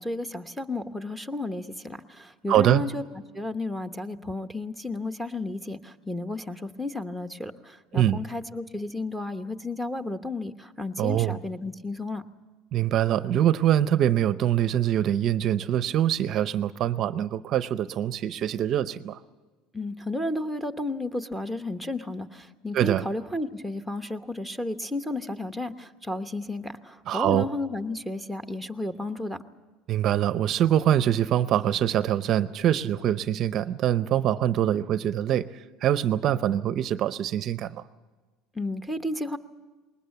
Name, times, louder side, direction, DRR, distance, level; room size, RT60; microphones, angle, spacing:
voice 1, 0.0-3.0 3.3-12.2 19.7-29.4 38.5-39.4, left 2 dB, ahead, 6 dB, 1.0 m, -33 dB
voice 2, 2.5-2.8 7.9-8.2 11.0-11.4 12.7-19.2 22.7-23.1 27.1-27.5 29.9-37.8, right 11 dB, 45° right, 14 dB, 0.6 m, -24 dB
20.5 x 19.0 x 8.2 m, 1.3 s
supercardioid pair, 125°, 0 cm